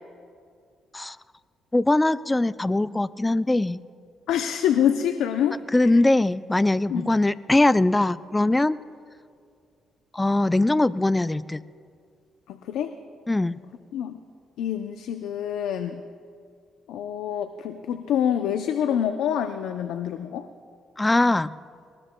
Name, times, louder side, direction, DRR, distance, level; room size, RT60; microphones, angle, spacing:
voice 1, 1.7-3.8 5.7-8.8 10.1-11.6 13.3-13.5 21.0-21.5, left 2 dB, 15° left, 16 dB, 0.3 m, -21 dB
voice 2, 4.3-5.6 6.9-7.1 12.5-12.9 13.9-14.2 14.6-16.0 16.9-20.5, left 9 dB, 90° left, 8 dB, 0.5 m, -26 dB
20.0 x 19.5 x 2.2 m, 2.3 s
cardioid pair, 90°, 0 cm